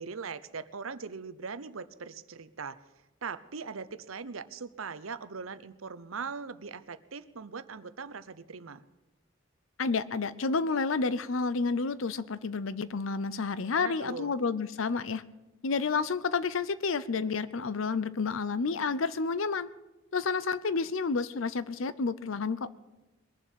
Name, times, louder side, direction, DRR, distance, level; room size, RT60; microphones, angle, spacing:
voice 1, 0.0-2.8 3.2-8.8 13.7-14.3, right 5 dB, 90° right, 14 dB, 0.8 m, -40 dB
voice 2, 9.8-15.2 15.6-19.7 20.1-22.6, left 4 dB, 70° left, 16 dB, 0.6 m, -30 dB
21.5 x 7.3 x 8.5 m, 1.1 s
head